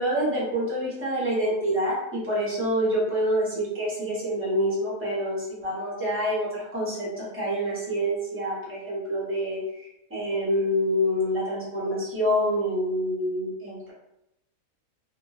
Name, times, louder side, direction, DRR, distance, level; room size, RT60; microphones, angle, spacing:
voice 1, 0.0-13.9, equal, 15° right, -6 dB, 0.4 m, -27 dB
2.9 x 2.3 x 2.3 m, 0.85 s
omnidirectional pair, 1.7 m